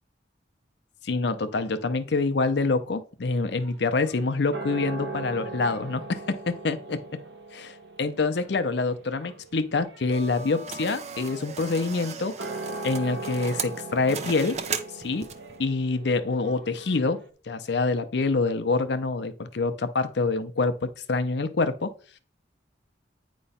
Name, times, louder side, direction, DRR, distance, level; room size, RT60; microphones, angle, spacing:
voice 1, 1.0-7.0 7.5-12.4 12.8-14.6 14.9-15.3 15.6-17.2 17.4-21.9, left 3 dB, 70° left, 0.6 m, -26 dB
sound 1, 3.5-17.3, right 3 dB, 75° right, 0.9 m, -40 dB
sound 2, 10.1-15.6, right 5 dB, 35° right, 0.6 m, -37 dB
8.8 x 3.1 x 5.5 m
head